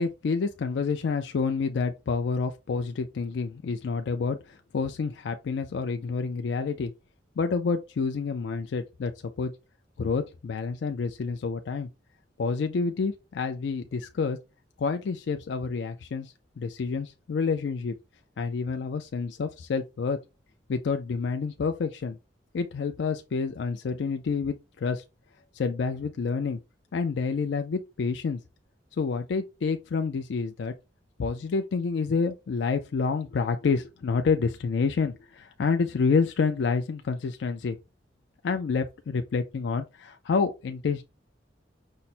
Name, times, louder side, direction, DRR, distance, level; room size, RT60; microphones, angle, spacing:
voice 1, 0.0-6.9 7.4-9.5 10.0-11.9 12.4-14.4 14.8-18.0 18.4-20.2 20.7-22.2 22.5-25.0 25.5-26.6 26.9-28.4 29.0-30.7 31.2-37.8 38.4-41.0, left 5 dB, 70° left, 0.4 m, -28 dB
5.5 x 2.1 x 4.1 m
head